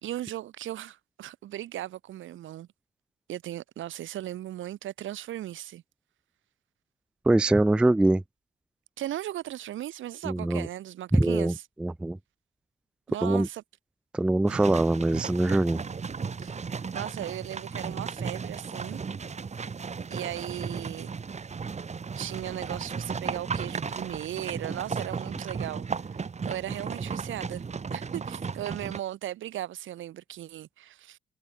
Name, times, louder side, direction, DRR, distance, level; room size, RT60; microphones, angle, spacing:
voice 1, 0.0-2.7 3.3-5.8 9.0-11.6 13.1-13.6 16.4-16.6 16.9-19.0 20.1-21.2 22.2-25.9 26.1-27.6 27.9-31.2, right 13 dB, 75° right, 2.4 m, -37 dB
voice 2, 7.3-8.2 10.2-10.7 11.1-12.2 13.2-13.5 14.1-15.8, right 2 dB, 5° right, 0.3 m, -23 dB
sound 1, 14.5-29.0, right 5 dB, 35° right, 2.7 m, -35 dB
cardioid pair, 90°, 20 cm